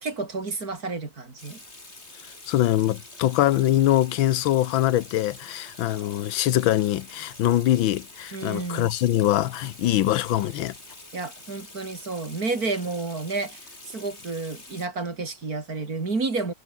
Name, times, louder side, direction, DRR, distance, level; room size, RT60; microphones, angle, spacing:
voice 1, 0.0-1.6 8.3-8.9 11.1-16.5, right 3 dB, 40° right, 3.7 m, -30 dB
Water tap faucet / Sink (filling or washing), 1.4-14.9, left 2 dB, 30° left, 5.2 m, -46 dB
voice 2, 2.5-10.7, left 13 dB, 70° left, 1.5 m, -23 dB
omnidirectional pair, 2.4 m